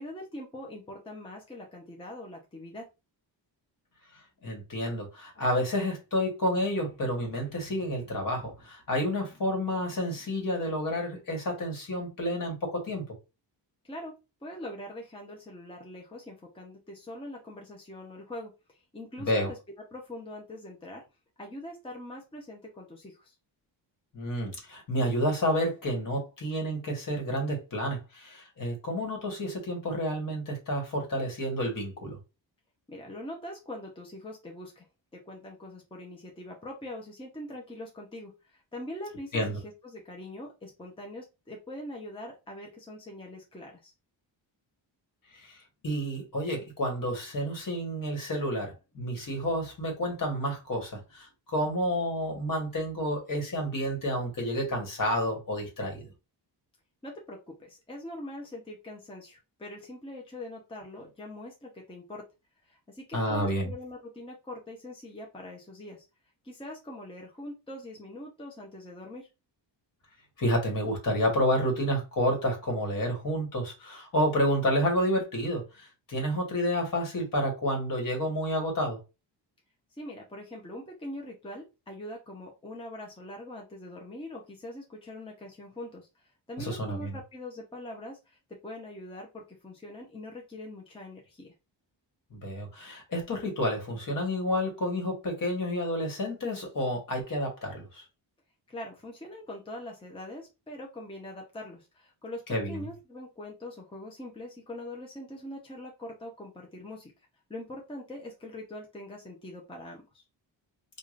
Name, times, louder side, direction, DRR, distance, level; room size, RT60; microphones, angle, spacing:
voice 1, 0.0-2.8 13.8-19.6 19.9-21.0 21.4-23.3 32.9-34.9 35.1-43.9 57.0-62.2 62.7-66.0 66.4-69.3 79.9-91.5 98.7-107.1 107.5-110.2, left 1 dB, 10° left, 0.8 m, -43 dB
voice 2, 4.4-13.0 19.2-19.5 24.1-32.2 39.3-39.6 45.3-56.1 63.1-63.7 70.4-79.0 86.6-87.1 92.3-98.0 102.5-102.8, equal, 45° left, 1.5 m, -30 dB
4.8 x 2.5 x 2.5 m
wide cardioid pair, 130°, 45 cm